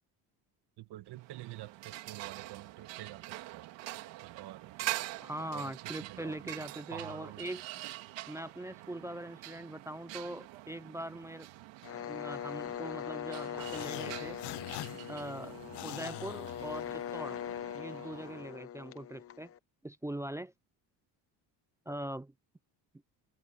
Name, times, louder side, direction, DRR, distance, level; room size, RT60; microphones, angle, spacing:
voice 1, 0.8-3.7 4.2-4.9 5.5-6.6 6.9-7.4, right 15 dB, 65° right, 1.3 m, -48 dB
sound 1, 1.1-18.6, right 16 dB, 85° right, 2.2 m, -45 dB
voice 2, 5.2-7.6 8.3-11.5 12.1-14.4 15.1-15.6 15.8-17.4 17.7-19.5 19.8-20.5 21.9-22.3, right 1 dB, 10° right, 0.3 m, -41 dB
sound 2, 11.8-19.6, left 9 dB, 35° left, 0.7 m, -41 dB
sound 3, 13.6-17.3, left 20 dB, 70° left, 0.6 m, -45 dB
cardioid pair, 165°, 43 cm